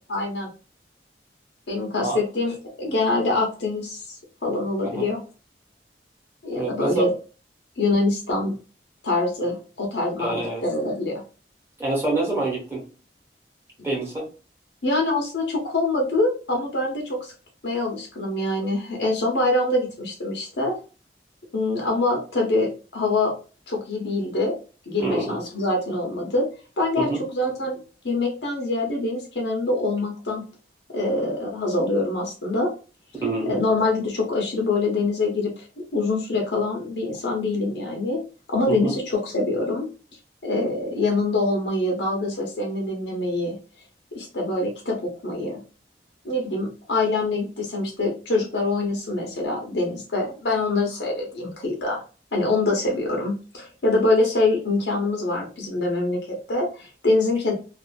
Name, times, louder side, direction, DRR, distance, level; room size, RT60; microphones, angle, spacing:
voice 1, 0.1-0.5 1.7-4.1 4.4-5.2 6.4-7.1 7.8-8.6 9.0-11.2 14.8-17.3 17.6-20.8 21.5-23.3 23.7-24.5 24.9-26.5 26.8-27.8 28.0-30.4 30.9-32.7 33.5-35.6 35.9-38.2 38.5-39.9 40.4-43.6 44.1-45.6 46.2-52.0 52.3-57.5, left 2 dB, 80° left, 0 dB, 0.7 m, -24 dB
voice 2, 6.5-7.1 10.2-10.6 11.8-12.8 13.8-14.3 25.0-25.4 27.0-27.2 33.1-33.5 38.7-38.9, right 2 dB, 15° right, -3 dB, 1.0 m, -26 dB
2.5 x 2.4 x 2.3 m, 0.36 s
head